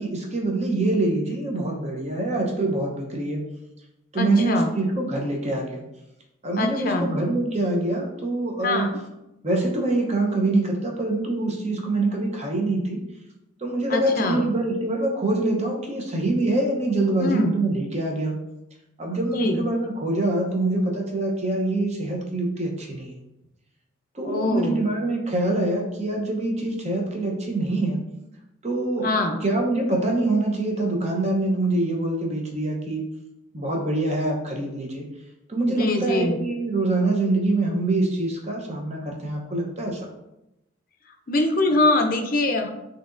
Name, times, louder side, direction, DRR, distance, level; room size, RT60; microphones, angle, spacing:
voice 1, 0.0-3.4 4.1-5.8 6.4-8.9 9.4-13.0 13.6-18.3 19.0-23.2 24.1-28.0 28.6-29.1 29.4-33.0 33.5-35.1 35.5-40.1, right 2 dB, 30° right, 0 dB, 0.7 m, -25 dB
voice 2, 4.2-4.7 6.6-7.1 8.6-9.0 13.9-14.5 17.2-17.6 19.3-19.6 24.2-24.8 29.0-29.4 35.6-36.4 41.3-42.7, left 2 dB, 45° left, 5 dB, 0.5 m, -23 dB
6.1 x 2.8 x 2.5 m, 0.90 s
head